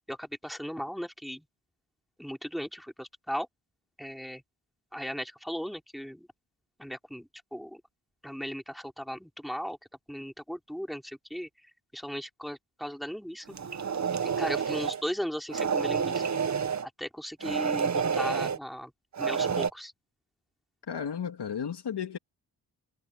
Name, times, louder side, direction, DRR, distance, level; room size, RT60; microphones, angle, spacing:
voice 1, 0.1-1.4 2.2-3.5 4.0-4.4 4.9-6.3 6.8-7.8 8.2-9.8 10.1-11.5 11.9-13.6 14.2-16.2 16.8-18.9 19.2-19.9, equal, ahead, 3.9 m, -37 dB
sound 1, 13.5-15.0 15.5-16.9 17.4-18.6 19.1-19.7, right 6 dB, 40° right, 1.0 m, -29 dB
voice 2, 20.9-22.2, left 7 dB, 65° left, 2.7 m, -33 dB
cardioid pair, 75°, 43 cm